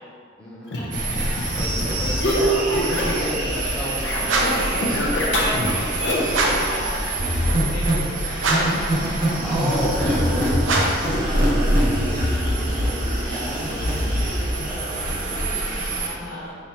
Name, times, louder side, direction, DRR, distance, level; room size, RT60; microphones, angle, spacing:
voice 1, 0.4-0.9 1.5-6.6 9.4-16.5, equal, 5° left, -9 dB, 0.9 m, -33 dB
sound 1, 0.7-3.4 3.6-6.4, equal, 65° left, 0.6 m, -25 dB
sound 2, 0.9-16.1, right 1 dB, 45° right, 0.7 m, -24 dB
sound 3, 4.2-4.7 6.3-6.8 8.4-8.9 10.6-11.1, right 2 dB, 85° right, 0.6 m, -22 dB
voice 2, 6.4-7.0 7.4-8.5 16.0-16.5, left 1 dB, 45° left, -8 dB, 1.3 m, -36 dB
4.2 x 3.4 x 2.8 m, 2.2 s
head